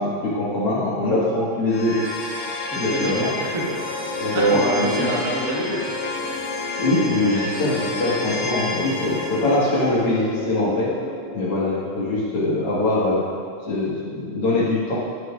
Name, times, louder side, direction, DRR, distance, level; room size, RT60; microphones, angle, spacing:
voice 1, 0.0-2.0 2.7-3.3 4.2-5.2 6.8-10.9 11.3-13.3 13.6-14.9, left 1 dB, 50° left, -7 dB, 2.4 m, -22 dB
sound 1, 1.7-12.7, left 3 dB, 80° left, 3.9 m, -30 dB
voice 2, 2.7-3.8 4.2-6.2, right 1 dB, 55° right, -5 dB, 0.9 m, -27 dB
12.0 x 7.7 x 2.5 m, 2.2 s
omnidirectional pair, 3.6 m